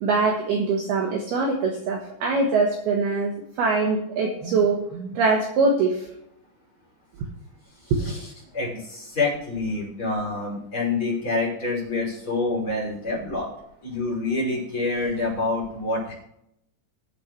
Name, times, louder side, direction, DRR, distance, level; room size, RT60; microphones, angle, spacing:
voice 1, 0.0-6.1 7.9-8.1, right 4 dB, 65° right, 1 dB, 2.7 m, -23 dB
voice 2, 7.8-8.3 8.5-13.5 13.8-16.1, left 3 dB, 25° left, -5 dB, 6.4 m, -27 dB
21.0 x 8.5 x 3.2 m, 0.77 s
omnidirectional pair, 5.9 m